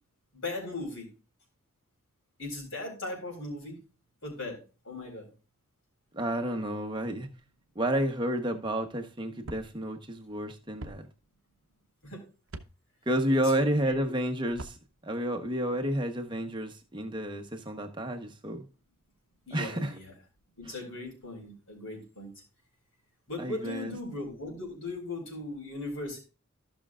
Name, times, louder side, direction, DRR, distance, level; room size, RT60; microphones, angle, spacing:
voice 1, 0.3-1.1 2.4-3.8 4.2-4.6 4.8-5.3 12.0-12.2 13.3-14.1 19.5-20.1 20.6-22.3 23.3-26.2, left 2 dB, 65° left, 4.4 m, -38 dB
voice 2, 6.1-7.3 7.7-11.0 13.1-14.8 15.0-18.7 19.5-19.9 20.7-20.8 23.4-23.9, right 1 dB, 20° right, 1.0 m, -30 dB
sound 1, 9.4-9.7 10.8-11.0 12.5-12.7 14.5-14.8, right 2 dB, 65° right, 0.8 m, -41 dB
15.0 x 6.0 x 2.4 m
head